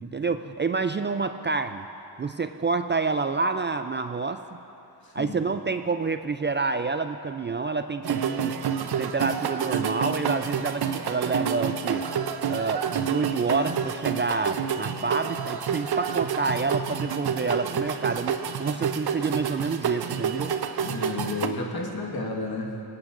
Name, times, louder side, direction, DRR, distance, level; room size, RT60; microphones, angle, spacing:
voice 1, 0.0-1.8 2.2-4.4 5.1-8.5 9.0-12.0 12.5-20.5, right 4 dB, 30° right, 8 dB, 0.3 m, -28 dB
sound 1, 8.0-21.5, right 7 dB, 65° right, 0.7 m, -29 dB
voice 2, 20.8-22.7, left 2 dB, 60° left, 0 dB, 1.6 m, -31 dB
22.0 x 9.2 x 2.5 m, 3.0 s
cardioid pair, 45°, 42 cm